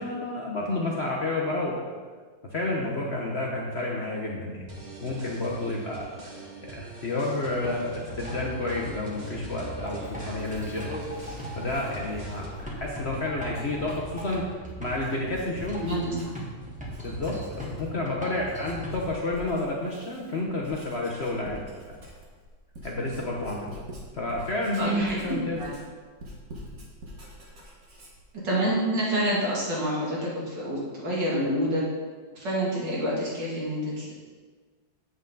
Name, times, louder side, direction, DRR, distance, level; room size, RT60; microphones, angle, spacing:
voice 1, 0.0-1.8 2.5-4.7 5.0-6.3 6.7-10.9 11.5-14.4 14.8-15.8 17.0-21.7 22.8-23.8 24.1-25.6, left 2 dB, 45° left, -2 dB, 1.0 m, -30 dB
sound 1, 4.7-12.7, right 2 dB, 30° right, 1.0 m, -43 dB
sound 2, 7.5-19.1, right 1 dB, 5° right, 1.4 m, -39 dB
Writing, 9.9-16.6 16.9-18.0 18.4-28.3, equal, 50° right, 1.9 m, -44 dB
voice 2, 15.8-16.4 24.8-25.7 28.4-31.8 32.3-34.1, equal, 70° right, -6 dB, 3.1 m, -28 dB
7.9 x 7.8 x 3.9 m, 1.4 s
omnidirectional pair, 2.0 m